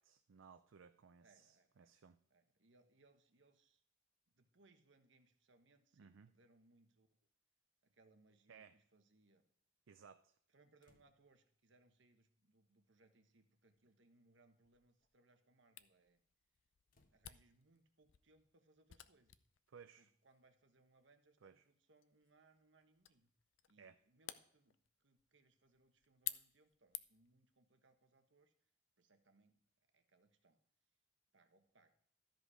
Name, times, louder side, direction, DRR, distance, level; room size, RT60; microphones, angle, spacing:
voice 1, 0.0-2.2 6.0-6.3 8.5-8.8 9.9-10.4 19.7-20.1 21.4-21.7 23.8-24.0, right 6 dB, 85° right, 9 dB, 0.5 m, -61 dB
voice 2, 1.2-1.9 2.3-3.8 4.3-7.3 7.8-9.4 10.5-16.2 17.1-19.4 20.0-23.3 23.7-28.5 29.0-29.6 29.9-30.6 31.3-31.9, right 2 dB, 65° right, 7 dB, 1.2 m, -72 dB
sound 1, 10.8-11.5 12.7-12.8 13.7-14.0 14.5-15.1 16.9-17.3, left 2 dB, 45° left, 1.1 m, -78 dB
Camera, 15.8-27.4, left 13 dB, 70° left, 0.5 m, -54 dB
13.0 x 5.3 x 4.8 m, 0.64 s
head